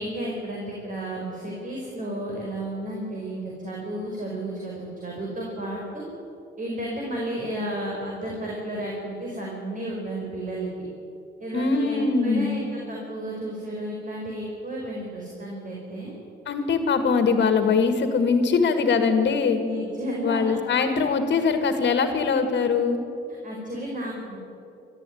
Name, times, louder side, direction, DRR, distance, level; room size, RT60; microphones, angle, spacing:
voice 1, 0.0-6.0 6.6-10.7 11.4-16.1 19.6-20.5 23.4-24.4, right 1 dB, 40° right, -2 dB, 5.0 m, -32 dB
voice 2, 11.5-12.6 16.5-19.6 20.2-23.0, left 5 dB, 60° left, 7 dB, 2.0 m, -22 dB
20.5 x 13.5 x 9.4 m, 2.9 s
cardioid pair, 90°, 20 cm